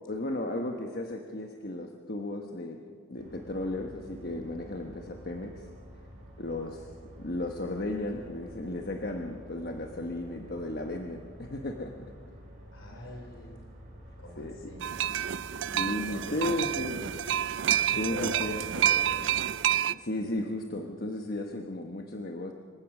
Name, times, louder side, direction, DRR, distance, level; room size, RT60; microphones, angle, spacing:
voice 1, 0.1-2.8 3.1-5.7 6.4-6.9 7.2-11.9 12.9-13.1 14.4-14.6 15.7-17.1 18.0-18.6 19.9-22.5, left 1 dB, 45° left, 3 dB, 1.2 m, -34 dB
sound 1, 3.2-19.4, equal, 40° right, 7.5 m, -49 dB
voice 2, 12.7-13.6 14.2-15.0 16.1-17.1 17.9-19.3, left 1 dB, 65° left, 2 dB, 4.5 m, -42 dB
sound 2, 14.8-19.9, right 10 dB, 55° right, 0.4 m, -28 dB
26.5 x 16.0 x 6.1 m, 2.2 s
head